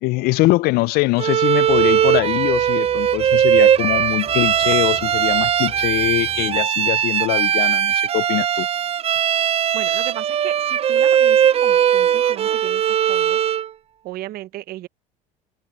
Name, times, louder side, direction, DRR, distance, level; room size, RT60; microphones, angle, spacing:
voice 1, 0.0-8.7, left 21 dB, 65° left, 0.4 m, -22 dB
Bowed string instrument, 1.2-13.7, right 9 dB, 35° right, 0.5 m, -19 dB
sound 1, 1.7-6.7, left 2 dB, 10° left, 6.4 m, -42 dB
sound 2, 7.0-12.6, right 26 dB, 80° right, 3.6 m, -48 dB
voice 2, 9.7-12.8 13.1-13.4 14.0-14.9, right 15 dB, 60° right, 0.9 m, -35 dB
supercardioid pair, 85°, 17 cm